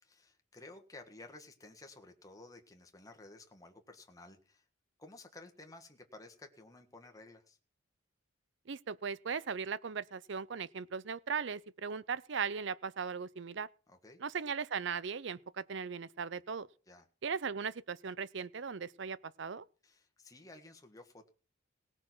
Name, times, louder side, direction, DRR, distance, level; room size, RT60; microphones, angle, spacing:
voice 1, 0.0-4.6 5.0-7.6 13.9-14.2 16.9-17.1 19.8-21.3, left 2 dB, 15° left, 1.5 m, -54 dB
voice 2, 8.7-13.7 14.2-16.7 17.2-19.7, right 6 dB, 65° right, 0.6 m, -38 dB
18.0 x 6.3 x 6.1 m
head